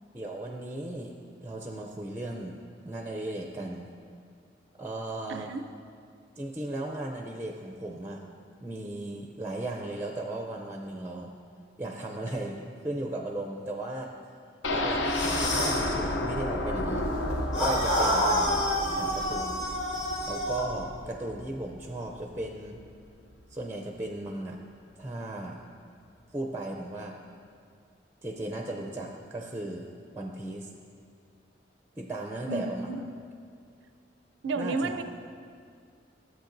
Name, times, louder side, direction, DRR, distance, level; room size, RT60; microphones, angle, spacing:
voice 1, 0.1-1.1 1.4-2.6 2.8-3.9 4.8-5.5 6.4-8.2 8.6-11.3 11.8-14.1 14.7-17.0 17.6-18.7 19.0-19.6 20.3-22.8 23.5-24.6 25.0-25.6 26.3-27.2 28.2-29.9 30.1-30.7 32.0-32.9 34.5-35.0, right 2 dB, 15° right, 3 dB, 0.4 m, -36 dB
voice 2, 5.3-5.6 32.5-33.1 34.4-35.0, right 3 dB, 80° right, 10 dB, 0.4 m, -32 dB
sound 1, 14.6-22.5 22.9-23.0 23.3-23.4, left 1 dB, 85° left, 0.7 m, -32 dB
sound 2, 15.0-15.9 17.5-20.7, equal, 40° left, 1.8 m, -28 dB
13.5 x 7.7 x 2.6 m, 2.3 s
head